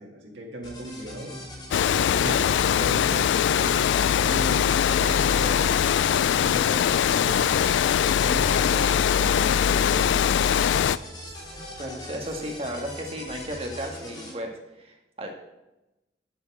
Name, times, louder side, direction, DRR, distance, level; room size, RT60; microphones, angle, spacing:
voice 1, 0.0-1.4 2.1-3.8 4.1-7.7 8.1-10.2, right 1 dB, 80° right, 0 dB, 2.1 m, -37 dB
sound 1, 0.6-14.3, equal, 25° left, 2.8 m, -41 dB
Water, 1.7-11.0, left 8 dB, 80° left, 0.3 m, -22 dB
sound 2, 3.3-13.6, right 1 dB, 50° right, 1.3 m, -50 dB
voice 2, 11.8-15.3, equal, 30° right, 2 dB, 1.7 m, -34 dB
8.4 x 7.2 x 6.6 m, 0.97 s
head